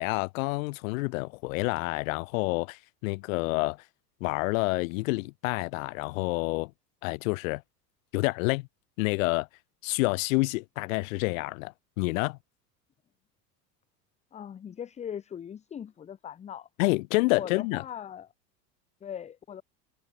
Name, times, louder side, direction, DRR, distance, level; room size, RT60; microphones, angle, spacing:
voice 1, 0.0-3.8 4.2-6.7 7.0-7.6 8.1-8.7 9.0-9.5 9.8-12.4 16.8-17.8, left 24 dB, 60° left, 0.6 m, -28 dB
voice 2, 14.3-16.7 17.3-18.3 19.0-19.6, left 9 dB, 15° left, 0.5 m, -40 dB
figure-of-eight pair, 75°, 48 cm